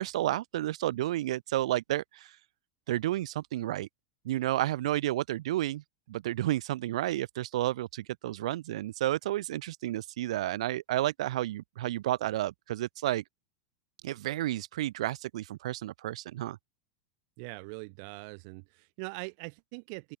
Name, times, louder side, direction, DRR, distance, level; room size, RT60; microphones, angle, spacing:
voice 1, 0.0-2.3 2.9-3.9 4.2-13.2 14.0-16.6, right 14 dB, 80° right, 1.8 m, -31 dB
voice 2, 17.4-20.2, right 37 dB, 50° right, 2.9 m, -42 dB
open air
supercardioid pair, 165°, 3 cm